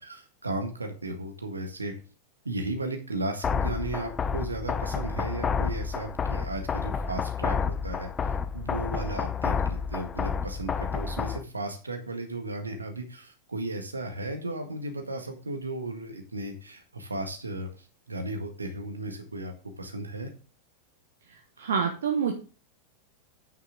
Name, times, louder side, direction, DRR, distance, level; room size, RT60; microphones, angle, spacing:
voice 1, 0.0-1.9 2.4-20.3, right 2 dB, 80° right, 5 dB, 1.7 m, -35 dB
sound 1, 3.4-11.4, left 6 dB, 20° left, 0.5 m, -30 dB
voice 2, 21.6-22.3, right 6 dB, 65° right, 3 dB, 1.2 m, -26 dB
9.0 x 6.4 x 3.8 m, 0.37 s
figure-of-eight pair, 90°, 0 cm